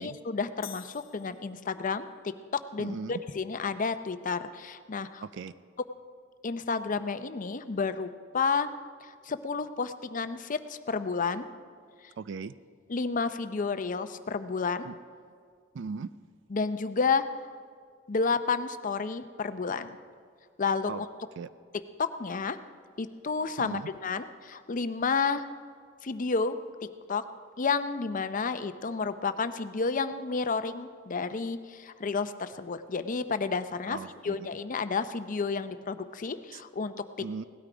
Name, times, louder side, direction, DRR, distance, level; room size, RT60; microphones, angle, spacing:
voice 1, 0.0-5.2 6.4-8.7 9.0-11.5 12.0-12.1 12.9-14.9 16.5-17.3 18.1-20.0 20.6-21.1 21.7-22.6 23.0-25.5 26.0-27.3 27.6-34.0 34.2-37.0, left 4 dB, 40° left, 11 dB, 0.6 m, -31 dB
sound 1, 0.6-2.0, left 9 dB, 90° left, 0.9 m, -48 dB
voice 2, 2.8-3.1 5.2-5.5 12.2-12.5 14.8-15.0 15.7-16.1 20.9-21.0 21.4-21.5 23.6-23.9 33.9-34.4 36.5-36.6 37.2-37.4, right 5 dB, 65° right, 15 dB, 0.4 m, -38 dB
17.5 x 12.5 x 5.0 m, 2.1 s
head